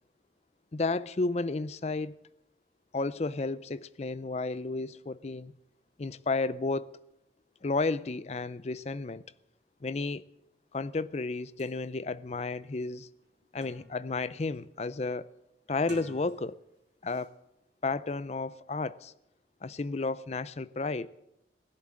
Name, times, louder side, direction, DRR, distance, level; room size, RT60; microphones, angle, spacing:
voice 1, 0.7-2.2 2.9-5.5 6.0-7.0 7.6-9.2 9.8-10.2 10.7-13.1 13.5-15.3 15.7-16.6 17.0-17.3 17.8-19.1 19.6-21.1, left 3 dB, 35° left, 0.5 m, -32 dB
sound 1, 11.3-11.4 11.6-11.8 12.3-12.4 12.8-14.1 14.5-14.9 15.7-16.7 17.1-17.3, right 3 dB, 85° right, 2.6 m, -54 dB
17.0 x 11.0 x 7.5 m
head